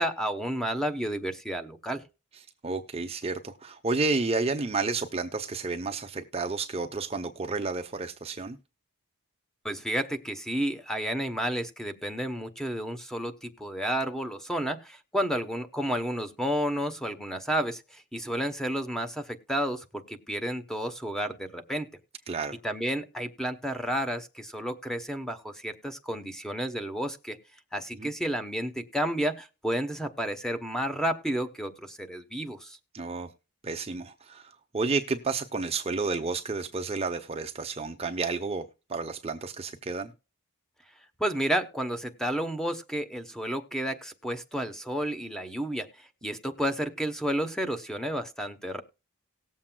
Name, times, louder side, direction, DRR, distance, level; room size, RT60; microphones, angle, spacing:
voice 1, 0.0-2.0 9.6-21.9 22.6-27.4 27.7-32.8 41.2-48.8, equal, ahead, 8 dB, 0.8 m, -31 dB
voice 2, 2.6-8.6 22.3-22.6 27.9-28.1 32.9-33.3 33.6-40.1, right 3 dB, 25° right, 6 dB, 0.6 m, -31 dB
18.5 x 7.4 x 2.2 m, 0.31 s
head